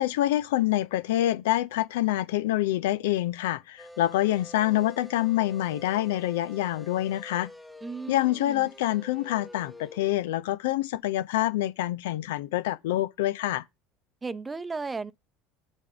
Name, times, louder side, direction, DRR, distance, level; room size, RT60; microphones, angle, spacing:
voice 1, 0.0-7.5 8.1-13.6, left 14 dB, 75° left, 0.4 m, -26 dB
sound 1, 3.8-10.2, left 1 dB, 5° left, 1.1 m, -47 dB
voice 2, 7.8-8.7 14.2-15.1, right 4 dB, 20° right, 0.6 m, -35 dB
7.4 x 3.4 x 6.1 m
hypercardioid pair, 75°, 0 cm